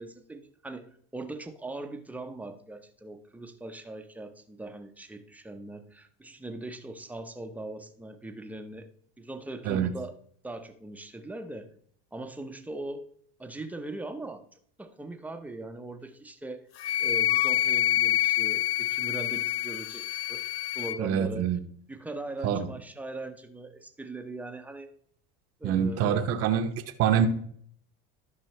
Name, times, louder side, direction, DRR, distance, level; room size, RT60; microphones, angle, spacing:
voice 1, 0.0-8.9 9.2-10.2 10.4-11.7 12.1-13.1 13.4-14.4 14.8-16.7 17.0-20.4 20.7-21.5 21.9-24.9 25.6-26.3, right 2 dB, 5° right, 7 dB, 0.8 m, -40 dB
Wind instrument woodwind instrument, 16.8-21.0, left 13 dB, 85° left, 0.7 m, -27 dB
voice 2, 21.0-21.6 22.4-22.7 25.6-26.7 27.0-27.3, right 8 dB, 50° right, 7 dB, 0.9 m, -25 dB
12.0 x 5.5 x 3.2 m, 0.62 s
supercardioid pair, 105°, 30 cm